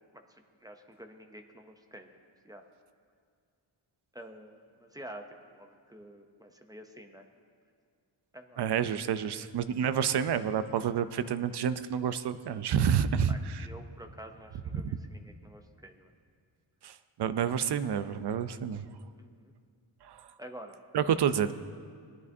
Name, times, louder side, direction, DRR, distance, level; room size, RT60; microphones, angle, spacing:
voice 1, 0.0-2.2 2.4-2.6 4.1-7.2 8.3-8.6 13.3-16.1 19.2-19.5 20.4-20.8, right 1 dB, 10° right, 4 dB, 0.5 m, -49 dB
voice 2, 8.6-13.7 14.7-14.8 16.8-18.9 20.0-20.3 20.9-21.5, right 8 dB, 55° right, 12 dB, 0.5 m, -29 dB
19.5 x 10.5 x 2.7 m, 2.2 s
wide cardioid pair, 175°, 48 cm